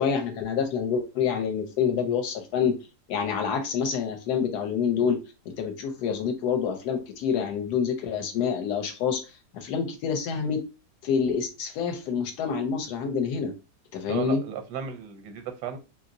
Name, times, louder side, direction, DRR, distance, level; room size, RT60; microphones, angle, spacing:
voice 1, 0.0-2.8 3.1-5.2 5.5-9.2 9.5-10.6 11.0-13.5 13.9-14.4, left 6 dB, 75° left, 1.1 m, -27 dB
voice 2, 14.1-15.8, right 8 dB, 85° right, 1.2 m, -35 dB
2.9 x 2.8 x 2.5 m
omnidirectional pair, 1.8 m